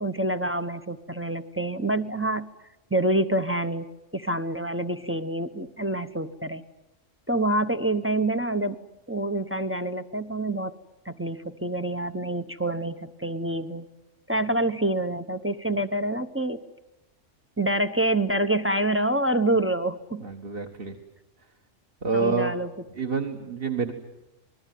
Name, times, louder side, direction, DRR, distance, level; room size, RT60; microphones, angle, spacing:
voice 1, 0.0-2.5 2.9-3.9 4.1-6.6 7.3-8.8 9.1-10.7 11.1-13.8 14.3-16.6 17.6-20.2 22.1-22.7, right 1 dB, 10° right, 7 dB, 0.8 m, -27 dB
voice 2, 20.2-21.0 22.0-22.5 23.0-23.9, right 4 dB, 50° right, 3 dB, 1.8 m, -27 dB
27.5 x 20.5 x 9.3 m, 0.95 s
omnidirectional pair, 1.3 m